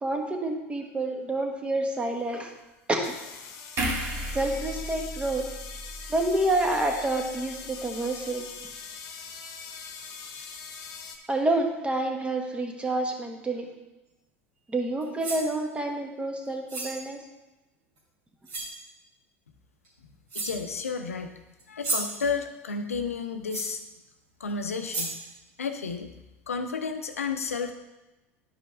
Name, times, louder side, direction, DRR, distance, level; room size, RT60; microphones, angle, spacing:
voice 1, 0.0-2.5 2.9-3.2 4.3-5.5 6.1-8.4 11.3-13.7 14.7-17.2, right 2 dB, 15° right, 3 dB, 1.4 m, -28 dB
sound 1, 2.2-2.3 3.0-11.2, left 5 dB, 50° left, 1.1 m, -42 dB
sound 2, 3.8-7.1 7.5-7.7, right 1 dB, 40° right, 1.9 m, -35 dB
sound 3, 15.0-15.5 16.7-17.0 18.0-18.1 18.5-18.8 19.8-19.9 20.3-20.7 21.6-22.2 23.5-23.8 24.5-24.6 24.9-25.3, right 2 dB, 65° right, 3.0 m, -33 dB
voice 2, 20.3-21.3 21.7-23.8 24.4-25.1 25.6-26.1 26.5-27.7, left 5 dB, 85° left, 7 dB, 0.7 m, -32 dB
11.0 x 5.1 x 3.5 m, 1.0 s
hypercardioid pair, 80°, 7 cm